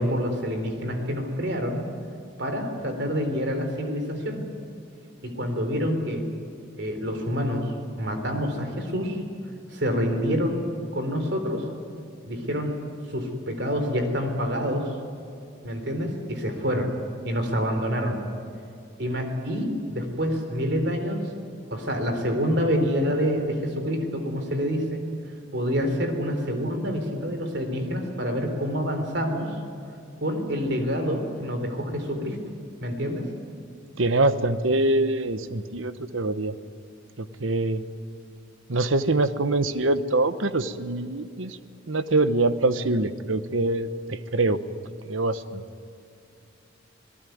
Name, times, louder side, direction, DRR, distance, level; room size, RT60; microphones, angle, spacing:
voice 1, 0.0-1.9 2.4-4.5 5.2-6.2 6.8-9.2 9.7-10.6 10.9-11.7 12.2-12.7 13.1-14.9 15.6-16.9 17.2-18.2 19.0-21.2 21.7-25.0 25.5-29.6 30.2-32.4 32.8-33.3, equal, 55° right, 6 dB, 3.9 m, -27 dB
voice 2, 34.0-36.5 37.2-37.8 38.7-41.6 41.9-44.6 45.1-45.6, right 2 dB, 75° right, 12 dB, 1.1 m, -24 dB
27.5 x 18.5 x 9.4 m, 2.5 s
head